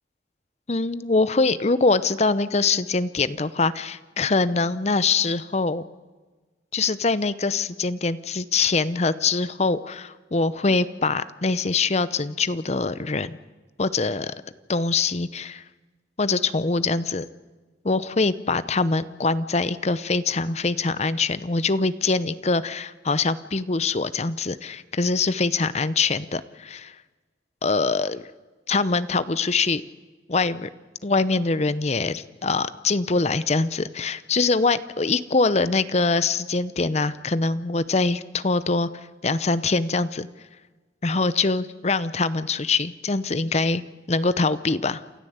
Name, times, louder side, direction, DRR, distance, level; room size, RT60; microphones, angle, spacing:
voice 1, 0.7-5.8 6.7-13.4 13.8-14.3 14.7-15.6 16.2-17.3 17.8-26.9 27.6-28.2 28.7-29.8 30.3-30.7 31.0-38.9 39.2-40.3 41.0-43.8 44.1-45.0, left 3 dB, 35° left, 15 dB, 0.7 m, -23 dB
28.5 x 13.5 x 8.0 m, 1.3 s
head